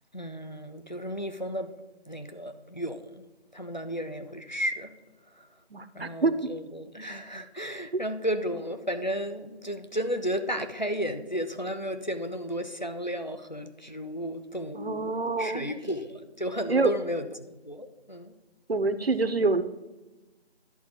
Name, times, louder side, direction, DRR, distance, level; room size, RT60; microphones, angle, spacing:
voice 1, 0.1-1.8 2.1-3.2 3.5-4.9 5.4-5.5 5.9-18.3, equal, 45° left, 7 dB, 0.6 m, -33 dB
voice 2, 5.7-6.4 7.9-8.0 14.7-15.8 16.7-17.0 18.7-19.6, right 3 dB, 65° right, 11 dB, 0.7 m, -26 dB
11.0 x 3.8 x 6.9 m, 1.1 s
figure-of-eight pair, 175°, 33 cm